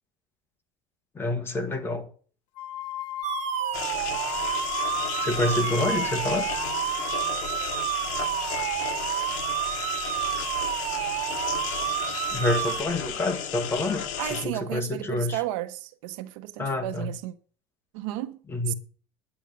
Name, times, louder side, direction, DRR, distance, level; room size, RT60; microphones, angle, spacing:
voice 1, 1.1-2.1 5.2-6.5 11.6-11.8 12.3-15.4 16.6-17.1 18.5-18.7, left 2 dB, 15° left, 1.6 m, -28 dB
sound 1, 2.6-7.8 8.2-9.2, left 14 dB, 80° left, 1.2 m, -38 dB
sound 2, 3.2-12.8, right 12 dB, 45° right, 1.2 m, -30 dB
sound 3, 3.7-14.5, left 9 dB, 55° left, 1.7 m, -34 dB
voice 2, 14.2-17.3 17.9-18.4 18.7-18.8, right 15 dB, 80° right, 1.1 m, -33 dB
9.9 x 9.2 x 6.8 m
cardioid pair, 165°, 16 cm